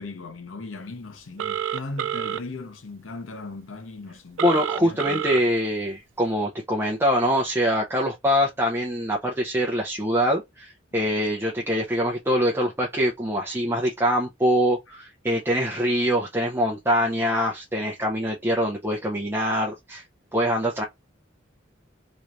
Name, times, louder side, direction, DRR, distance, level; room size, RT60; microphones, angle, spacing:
voice 1, 0.0-5.4, left 3 dB, 85° left, 0.7 m, -38 dB
Telephone, 1.4-2.4 4.4-5.4, right 10 dB, 75° right, 0.3 m, -28 dB
voice 2, 4.4-20.0 20.3-20.8, equal, 10° right, 0.6 m, -24 dB
3.1 x 3.0 x 2.5 m
head